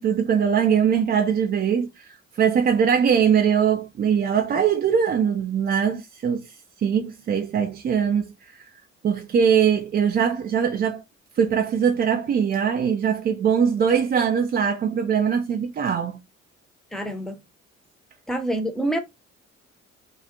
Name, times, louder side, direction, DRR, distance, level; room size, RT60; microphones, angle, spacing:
voice 1, 0.0-6.5 6.8-8.6 9.0-11.0 11.4-16.2, right 7 dB, 25° right, 0.4 m, -22 dB
voice 2, 16.9-17.3 18.3-19.0, right 1 dB, ahead, 0.7 m, -26 dB
2.4 x 2.4 x 2.7 m
figure-of-eight pair, 45°, 39 cm